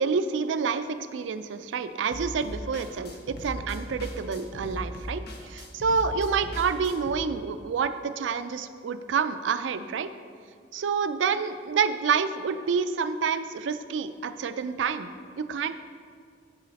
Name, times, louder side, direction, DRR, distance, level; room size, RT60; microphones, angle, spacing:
voice 1, 0.0-10.1 10.7-15.1 15.4-15.7, right 5 dB, 90° right, 11 dB, 0.4 m, -28 dB
sound 1, 2.1-7.2, equal, 60° left, 0.9 m, -38 dB
9.2 x 4.9 x 4.0 m, 2.2 s
head